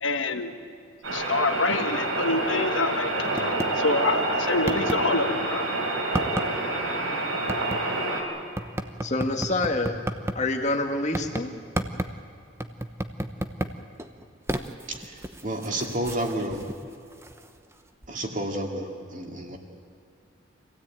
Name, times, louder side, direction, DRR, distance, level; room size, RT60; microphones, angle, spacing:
voice 1, 0.0-0.6 1.1-5.6, left 3 dB, 65° left, 7 dB, 1.4 m, -27 dB
sound 1, 1.0-8.2, right 2 dB, 90° right, 4.3 m, -27 dB
sound 2, 3.4-3.7 4.2-4.3 4.7-5.0 6.1-6.5 7.5-7.8 8.6-10.4 11.1-11.4 11.8-12.1 12.6-13.7 14.0-17.7 18.0-18.1, right 1 dB, 15° right, 0.8 m, -31 dB
voice 2, 9.0-10.0 10.3-11.5, left 2 dB, 35° left, 3 dB, 1.8 m, -26 dB
voice 3, 14.9-16.7 18.1-19.6, right 1 dB, 40° right, 2 dB, 2.4 m, -31 dB
26.0 x 16.5 x 8.9 m, 2.4 s
head